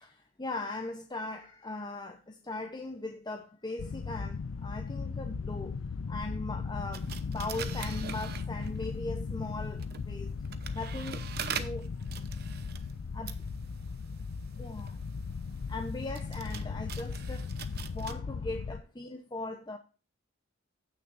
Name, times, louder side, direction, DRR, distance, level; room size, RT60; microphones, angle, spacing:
voice 1, 0.0-5.8 6.1-10.4 10.7-11.3 11.6-11.9 13.1-13.3 14.6-15.0 15.7-17.5 17.9-19.8, left 2 dB, 20° left, 0.8 m, -39 dB
sound 1, 3.8-18.8, left 4 dB, 75° left, 0.4 m, -37 dB
sound 2, 6.9-9.0 9.6-18.1, right 8 dB, 50° right, 0.9 m, -43 dB
15.0 x 6.5 x 2.6 m
head